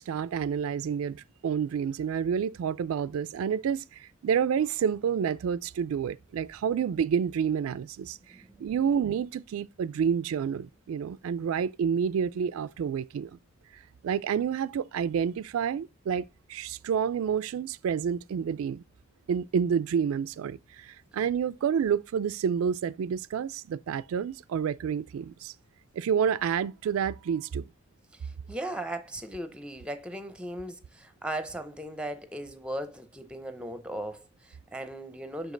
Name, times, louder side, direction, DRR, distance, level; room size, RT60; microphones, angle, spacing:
voice 1, 0.0-8.2 8.6-13.4 14.0-18.8 19.3-25.5 25.9-27.6, right 7 dB, 85° right, 0.3 m, -29 dB
voice 2, 8.3-8.7 28.1-35.5, right 1 dB, 5° right, 0.6 m, -38 dB
6.2 x 5.2 x 3.8 m
head